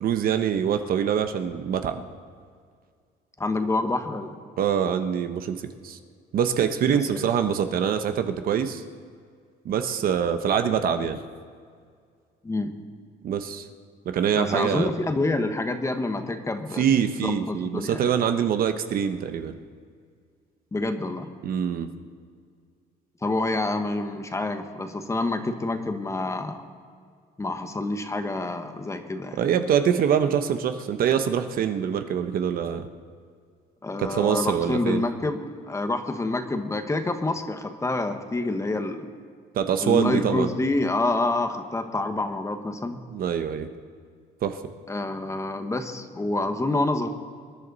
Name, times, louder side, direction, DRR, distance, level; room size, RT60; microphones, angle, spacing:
voice 1, 0.0-2.0 4.6-5.6 5.8-6.0 6.3-8.8 9.6-11.2 13.2-13.7 14.0-14.9 16.8-19.5 21.4-21.9 29.4-32.9 34.0-35.0 39.5-40.5 43.1-43.7 44.4-44.6, right 8 dB, 60° right, 8 dB, 1.0 m, -24 dB
voice 2, 3.4-4.3 6.9-7.3 12.4-12.7 14.3-16.9 17.2-18.0 20.7-21.3 23.2-26.6 27.4-29.4 33.8-39.1 39.8-43.0 44.9-47.1, left 2 dB, 15° left, 7 dB, 1.3 m, -27 dB
25.5 x 11.0 x 4.1 m, 2.1 s
cardioid pair, 110°, 17 cm